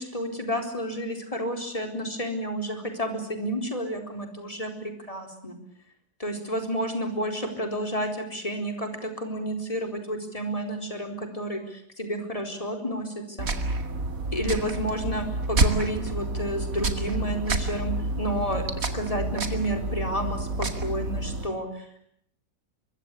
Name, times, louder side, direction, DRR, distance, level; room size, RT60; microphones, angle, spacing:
voice 1, 0.0-5.6 6.2-13.5 14.3-22.1, equal, 20° left, 4 dB, 4.4 m, -31 dB
sound 1, 13.4-21.5, right 2 dB, 60° right, 2.6 m, -29 dB
24.0 x 23.0 x 8.4 m, 0.68 s
omnidirectional pair, 1.7 m